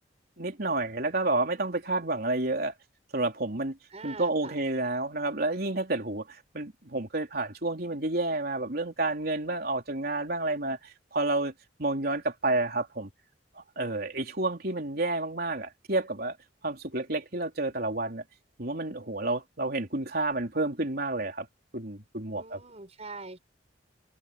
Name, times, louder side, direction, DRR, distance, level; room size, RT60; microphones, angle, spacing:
voice 1, 0.4-2.7 3.1-3.8 4.0-11.5 11.8-13.1 13.6-16.4 16.6-18.2 18.6-21.5 21.7-22.6, right 2 dB, 55° right, 3.6 m, -30 dB
voice 2, 3.9-4.5 22.3-23.4, right 3 dB, 35° right, 5.6 m, -43 dB
head